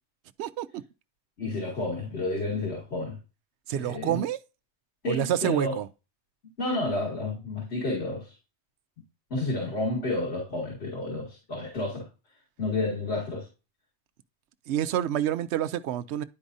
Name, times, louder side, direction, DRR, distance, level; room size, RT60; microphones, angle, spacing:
voice 1, 0.4-0.8 3.7-4.4 5.1-5.9 14.7-16.2, right 11 dB, 75° right, 0.8 m, -28 dB
voice 2, 1.4-3.2 3.7-4.2 5.0-5.7 6.6-8.3 9.3-12.1 12.6-13.5, left 2 dB, 65° left, 2.4 m, -30 dB
10.5 x 4.8 x 2.6 m
omnidirectional pair, 1.2 m